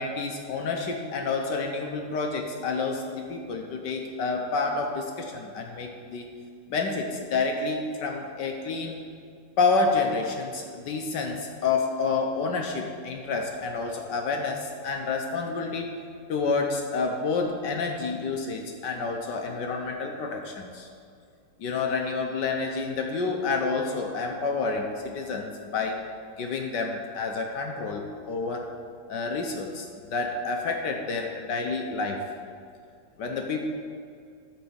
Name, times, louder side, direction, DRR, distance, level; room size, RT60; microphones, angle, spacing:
voice 1, 0.0-6.3 6.7-9.0 9.6-16.0 16.3-20.9 21.6-26.0 26.4-28.7 29.1-32.2 33.2-33.6, left 4 dB, 65° left, 3 dB, 1.2 m, -29 dB
12.5 x 4.3 x 7.0 m, 2.3 s
omnidirectional pair, 2.3 m